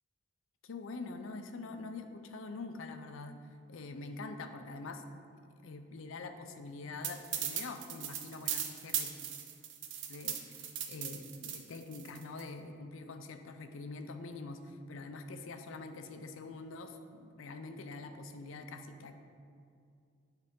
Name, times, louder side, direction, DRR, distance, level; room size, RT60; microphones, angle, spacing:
voice 1, 0.6-3.4 3.7-5.0 5.6-9.1 10.1-19.2, left 3 dB, 75° left, 7 dB, 0.5 m, -45 dB
sound 1, 7.0-12.4, right 9 dB, 65° right, 0.6 m, -38 dB
8.9 x 3.8 x 3.6 m, 2.4 s
head